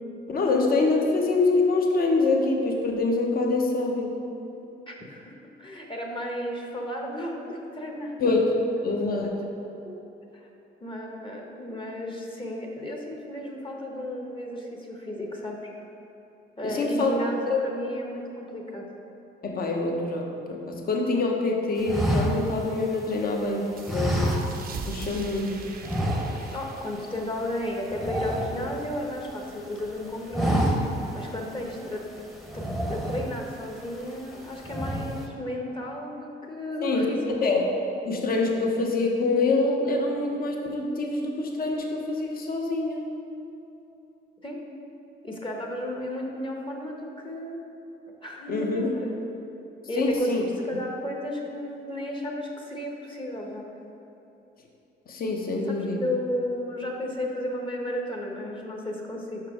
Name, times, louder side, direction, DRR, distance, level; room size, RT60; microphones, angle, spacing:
voice 1, 0.3-4.2 8.2-8.5 8.8-9.4 16.6-17.2 17.5-17.6 19.4-24.4 24.8-25.5 36.8-37.1 37.4-37.6 38.0-43.1 48.5-48.9 49.9-50.4 55.1-56.1, left 3 dB, 50° left, 1 dB, 0.9 m, -25 dB
voice 2, 4.9-5.3 5.6-8.1 9.8-9.9 10.3-10.5 10.8-15.7 16.6-18.9 26.5-30.7 31.1-32.0 32.5-37.3 44.4-44.6 45.2-47.6 48.2-49.3 49.9-53.7 55.7-59.4, left 1 dB, 25° left, 0 dB, 1.0 m, -33 dB
sound 1, 21.8-23.3 23.9-25.0 25.2-25.4 25.8-26.7 27.0-27.2 27.5-29.2 29.6-29.9 30.2-31.2 31.6-31.7 32.5-33.6 34.0-34.4 34.6-35.3, equal, ahead, 0.8 m, -28 dB
sound 2, 23.8-29.0, right 5 dB, 50° right, 0.6 m, -42 dB
5.8 x 4.7 x 4.8 m, 2.9 s
cardioid pair, 90°, 20 cm